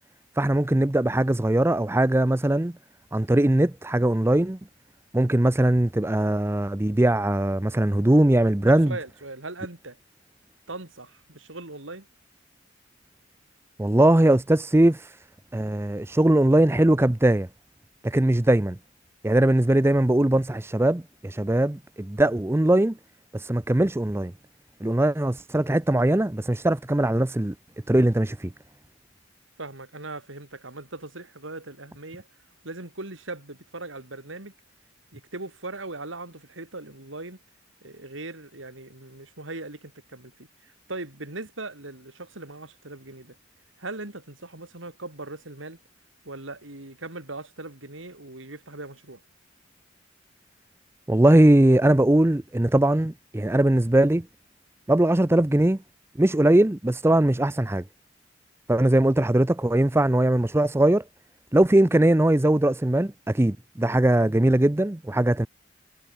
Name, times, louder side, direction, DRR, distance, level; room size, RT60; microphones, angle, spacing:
voice 1, 0.4-2.7 3.1-4.6 5.1-8.9 13.8-15.1 15.5-17.5 18.0-18.8 19.2-23.0 23.3-24.3 24.8-27.5 27.9-28.5 51.1-54.3 54.9-55.8 56.2-57.8 58.7-61.0 61.5-65.5, right 1 dB, 15° right, 0.5 m, -20 dB
voice 2, 8.9-10.0 10.7-12.1 29.6-32.3 32.6-34.5 35.1-37.4 37.8-43.4 43.8-45.8 46.2-49.2, right 2 dB, 85° right, 3.9 m, -39 dB
head